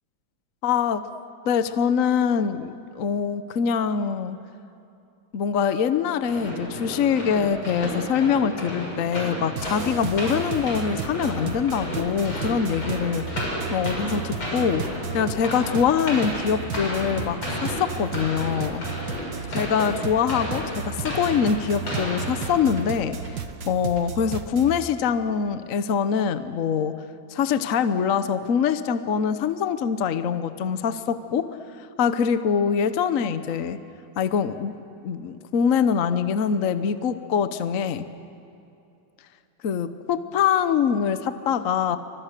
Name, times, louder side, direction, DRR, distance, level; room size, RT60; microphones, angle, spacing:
voice 1, 0.6-1.0 1.4-4.4 5.3-13.3 13.7-18.8 19.5-23.3 23.7-27.0 27.3-31.5 32.0-33.8 34.2-34.8 35.0-38.1 39.6-42.0, left 7 dB, 55° left, 11 dB, 1.0 m, -24 dB
sound 1, 6.2-23.0, equal, 85° left, 7.6 m, -32 dB
sound 2, 9.6-24.8, right 6 dB, 65° right, 2.0 m, -35 dB
29.5 x 25.5 x 6.7 m, 2.7 s
omnidirectional pair, 2.2 m